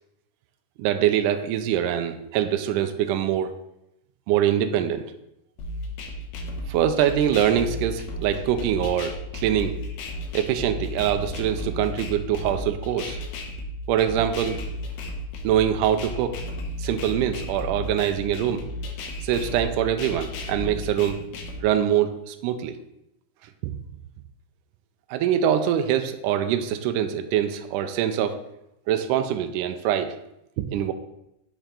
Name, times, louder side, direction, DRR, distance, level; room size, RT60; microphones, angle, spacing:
voice 1, 0.8-3.5 4.3-5.1 6.7-9.8 10.3-13.2 13.9-14.6 15.4-16.4 16.8-18.6 19.2-21.2 21.6-22.7 23.6-23.7 25.1-28.4 28.9-30.2 30.6-30.9, right 10 dB, 85° right, 8 dB, 1.8 m, -24 dB
sound 1, 5.6-21.6, left 1 dB, 75° left, 2.7 m, -34 dB
7.1 x 5.6 x 3.7 m, 0.82 s
omnidirectional pair, 4.3 m